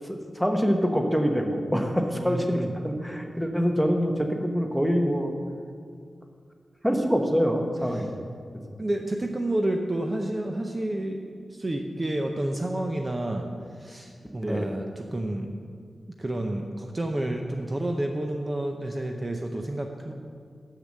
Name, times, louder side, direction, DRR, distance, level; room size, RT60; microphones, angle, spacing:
voice 1, 0.0-5.4 6.8-8.2 8.7-8.8 14.4-14.7, equal, ahead, 3 dB, 0.9 m, -25 dB
voice 2, 2.1-2.7 7.9-8.1 8.8-15.5 16.2-20.1, right 1 dB, 25° right, 3 dB, 0.6 m, -30 dB
6.6 x 6.5 x 7.5 m, 2.1 s
wide cardioid pair, 100°, 0 cm